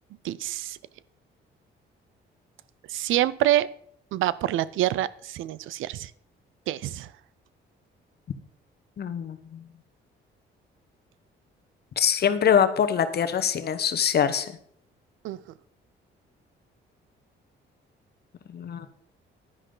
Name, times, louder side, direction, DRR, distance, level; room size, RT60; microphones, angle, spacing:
voice 1, 0.2-0.8 2.9-3.7 4.1-6.1 6.7-7.1 15.2-15.4, right 13 dB, 85° right, 19 dB, 0.5 m, -26 dB
voice 2, 9.0-9.6 12.0-14.5 18.5-18.9, left 8 dB, 55° left, 10 dB, 1.1 m, -24 dB
10.5 x 10.0 x 3.9 m, 0.63 s
cardioid pair, 90°, 20 cm